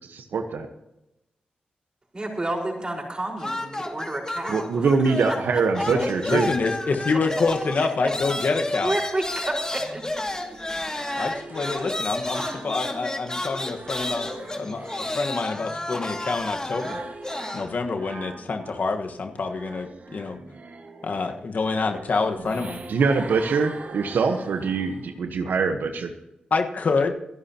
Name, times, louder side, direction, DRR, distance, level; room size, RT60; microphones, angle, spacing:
voice 1, 0.1-0.7 4.5-6.5 22.9-26.1, right 4 dB, 80° right, 6 dB, 1.2 m, -23 dB
voice 2, 2.1-4.9 5.3-5.4 5.7-5.8 8.0-8.1 8.8-10.0, right 1 dB, 30° right, 0 dB, 4.8 m, -30 dB
sound 1, 3.4-5.5 5.7-17.7, left 1 dB, 25° left, 2.3 m, -31 dB
voice 3, 5.9-9.0 11.1-17.0 17.5-20.4 21.0-22.8 26.5-27.1, left 4 dB, 60° left, 4 dB, 1.5 m, -27 dB
sound 2, 9.8-13.2 13.6-18.9 19.3-25.2, right 3 dB, 55° right, 1.7 m, -42 dB
26.5 x 11.0 x 3.0 m, 0.89 s
cardioid pair, 60°, 3 cm